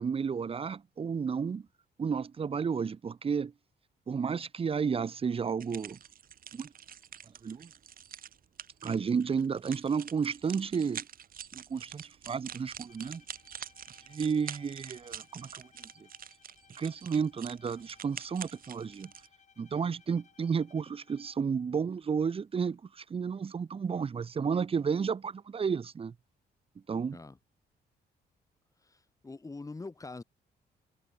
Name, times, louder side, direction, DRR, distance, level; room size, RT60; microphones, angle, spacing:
voice 1, 0.0-1.7 2.0-3.5 4.1-6.0 6.5-6.7 7.4-7.7 8.8-11.1 11.5-13.2 14.1-15.7 15.9-16.1 16.8-19.1 19.6-26.1 26.9-27.2, right 6 dB, 30° right, 1.3 m, -32 dB
sound 1, 5.6-19.3, right 9 dB, 55° right, 3.0 m, -46 dB
Bowed string instrument, 12.9-21.6, left 7 dB, 40° left, 6.2 m, -63 dB
voice 2, 28.8-30.2, left 3 dB, 20° left, 6.1 m, -44 dB
cardioid pair, 140°, 18 cm